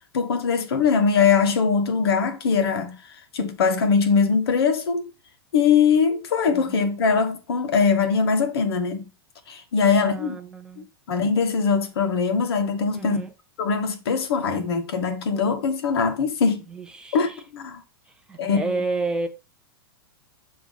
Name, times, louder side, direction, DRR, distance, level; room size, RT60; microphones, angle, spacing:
voice 1, 0.1-2.9 3.3-5.0 5.5-9.1 9.5-10.4 11.1-13.2 13.6-16.6 17.1-17.8 18.4-18.8, left 5 dB, 75° left, 1.5 m, -21 dB
voice 2, 6.5-6.9 9.8-10.9 12.9-13.3 16.7-17.4 18.3-19.3, right 3 dB, 5° right, 0.3 m, -31 dB
6.9 x 3.1 x 5.5 m
supercardioid pair, 175°, 13 cm